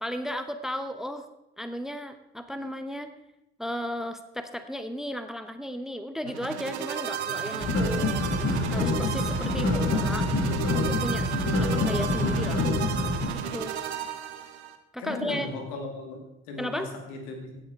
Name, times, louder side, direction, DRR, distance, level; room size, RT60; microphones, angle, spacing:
voice 1, 0.0-1.3 1.6-3.1 3.6-8.1 8.5-10.3 10.8-12.7 13.5-13.8 14.9-15.6 16.6-16.9, equal, ahead, 10 dB, 1.0 m, -35 dB
sound 1, 6.2-14.7, right 8 dB, 85° right, 1.0 m, -34 dB
sound 2, 7.6-13.3, left 2 dB, 45° left, 2.4 m, -26 dB
voice 2, 15.0-17.6, left 2 dB, 75° left, 3 dB, 2.4 m, -37 dB
16.5 x 7.5 x 4.6 m, 0.94 s
hypercardioid pair, 50°, 33 cm